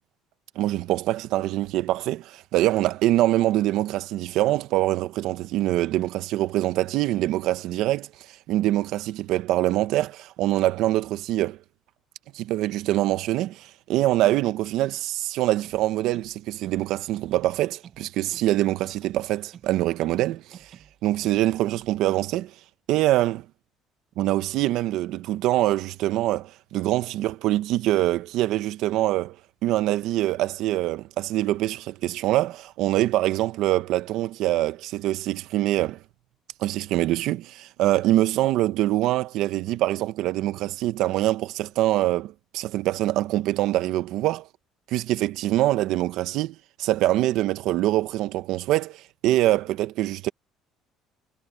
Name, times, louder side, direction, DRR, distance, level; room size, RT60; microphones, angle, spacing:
voice 1, 0.6-8.1 8.5-11.6 12.3-20.7 21.0-22.5 22.9-23.4 24.2-29.4 29.6-36.0 36.6-44.5 44.9-50.3, right 15 dB, 70° right, 0.9 m, -24 dB
sound 1, 15.6-16.9 17.1-18.6 18.8-20.3 20.5-22.0, right 9 dB, 40° right, 7.1 m, -50 dB
cardioid pair, 135°, 0 cm